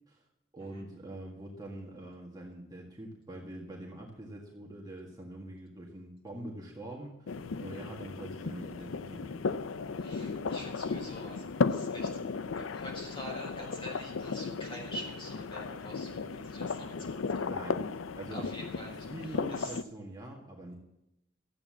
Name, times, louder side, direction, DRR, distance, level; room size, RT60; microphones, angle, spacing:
voice 1, 0.5-9.5 17.5-17.8 18.1-18.4 19.1-20.8, right 1 dB, 20° right, -2 dB, 1.8 m, -44 dB
sound 1, 7.3-19.8, left 4 dB, 85° left, 0.5 m, -35 dB
voice 2, 10.0-12.2 12.6-17.5 18.3-19.8, equal, 25° left, -1 dB, 4.8 m, -45 dB
13.5 x 8.7 x 7.4 m, 0.86 s
head